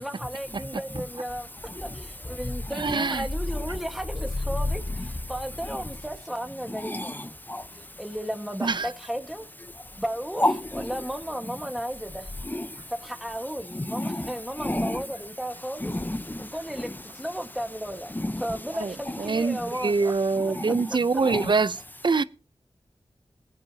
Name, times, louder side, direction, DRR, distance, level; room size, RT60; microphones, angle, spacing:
voice 1, 0.0-1.5 1.8-7.3 8.0-9.5 9.9-12.3 12.9-15.9 16.4-20.1, equal, ahead, 1.5 m, -34 dB
voice 2, 2.8-3.3 8.6-8.9 18.7-22.2, right 4 dB, 50° right, 0.6 m, -25 dB
voice 3, 6.7-7.7 10.4-10.9 12.4-12.8 13.7-15.0 15.8-16.9 18.1-18.4 19.6-19.7 20.6-20.8 21.2-21.5, left 1 dB, 20° left, 0.9 m, -30 dB
21.5 x 9.2 x 2.8 m
cardioid pair, 45°, 10 cm